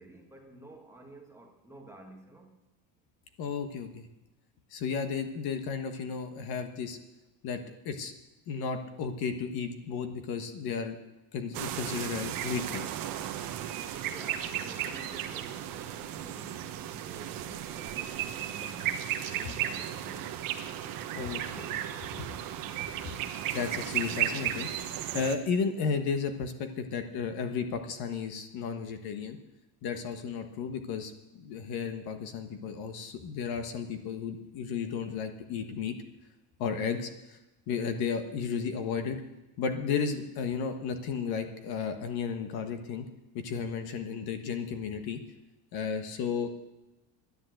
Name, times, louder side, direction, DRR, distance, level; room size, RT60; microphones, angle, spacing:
voice 1, 0.0-2.5 14.0-20.9 21.2-21.9, right 2 dB, 5° right, 1 dB, 1.4 m, -51 dB
voice 2, 3.4-4.1 4.7-7.0 7.4-7.6 7.8-8.1 8.5-11.0 11.3-12.9 21.1-21.4 22.2-22.3 23.0-23.2 23.5-24.7 25.1-29.4 29.8-35.9 36.6-37.4 37.7-39.2 39.6-43.1 43.3-45.2 45.7-46.5, left 6 dB, 50° left, 7 dB, 1.4 m, -33 dB
sound 1, 11.5-25.4, right 11 dB, 45° right, 1.1 m, -35 dB
11.0 x 10.5 x 7.8 m, 0.99 s
cardioid pair, 165°, 47 cm